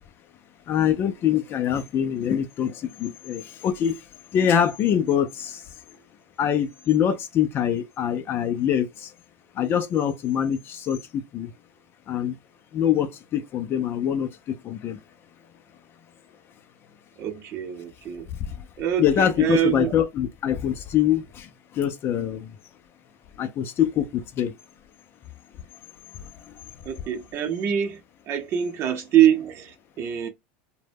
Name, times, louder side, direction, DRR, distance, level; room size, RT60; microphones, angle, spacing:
voice 1, 0.7-3.9 4.3-5.6 6.4-9.1 9.6-11.5 12.1-12.3 12.7-14.3 14.6-15.0 19.0-21.5 21.8-22.5 23.4-24.5 26.5-26.6, left 9 dB, 35° left, 0.4 m, -24 dB
voice 2, 17.2-18.3 18.8-19.9 26.8-28.0 28.3-30.3, right 10 dB, 45° right, 0.6 m, -24 dB
2.1 x 2.0 x 3.3 m
supercardioid pair, 120°, 7 cm